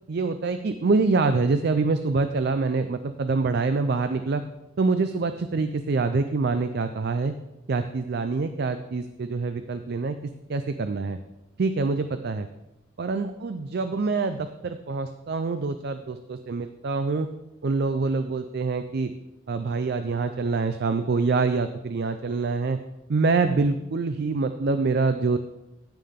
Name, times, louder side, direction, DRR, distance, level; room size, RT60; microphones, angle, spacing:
voice 1, 0.1-4.4 4.8-7.3 7.7-11.2 11.6-12.5 13.0-17.3 17.6-19.1 19.5-22.8 23.1-25.4, right 4 dB, 55° right, 9 dB, 0.4 m, -25 dB
16.0 x 5.6 x 3.6 m, 0.94 s
head